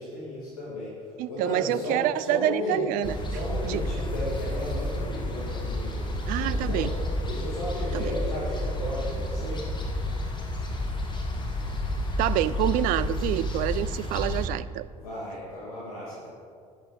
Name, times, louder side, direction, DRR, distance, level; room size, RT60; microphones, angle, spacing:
voice 1, 0.0-2.9 3.2-9.7 14.9-16.3, left 1 dB, 75° left, -8 dB, 2.3 m, -34 dB
voice 2, 1.2-3.1 3.7-3.8 6.3-6.9 7.9-8.0 12.2-14.9, right 14 dB, 50° right, 16 dB, 0.4 m, -27 dB
sound 1, 3.0-14.5, left 1 dB, 25° left, 1.8 m, -30 dB
11.5 x 11.0 x 4.1 m, 2.2 s
figure-of-eight pair, 60°, 19 cm